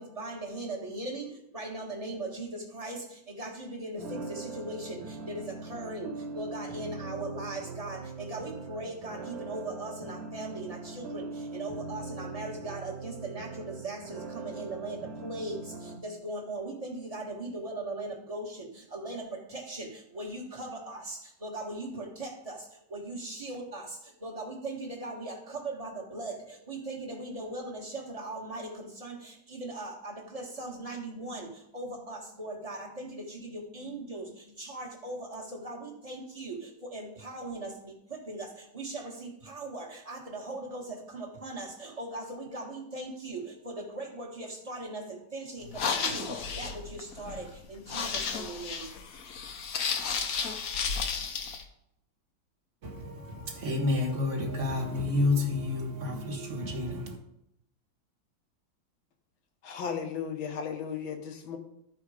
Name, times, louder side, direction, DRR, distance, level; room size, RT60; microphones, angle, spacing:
voice 1, 0.0-48.9, right 2 dB, 20° right, 1.4 m, -39 dB
sound 1, 4.0-16.0, right 3 dB, 80° right, 1.7 m, -41 dB
sound 2, 45.6-51.6, left 5 dB, 55° left, 1.0 m, -33 dB
voice 2, 52.8-57.1, left 2 dB, 40° right, 1.5 m, -30 dB
voice 3, 59.6-61.6, left 7 dB, 80° left, 1.9 m, -35 dB
13.0 x 4.8 x 4.9 m
omnidirectional pair, 2.2 m